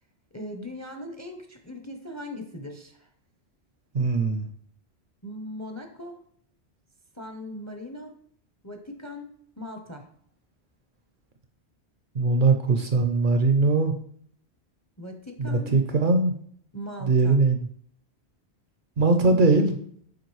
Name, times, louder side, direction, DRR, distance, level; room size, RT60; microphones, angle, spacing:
voice 1, 0.3-3.1 5.2-6.2 7.1-8.2 8.6-10.1 15.0-15.7 16.7-17.4, left 1 dB, 20° left, 4 dB, 0.5 m, -39 dB
voice 2, 3.9-4.5 12.2-13.9 15.4-16.3 17.1-17.6 19.0-19.8, right 3 dB, 55° right, 6 dB, 0.7 m, -21 dB
7.5 x 4.8 x 3.1 m, 0.62 s
omnidirectional pair, 1.1 m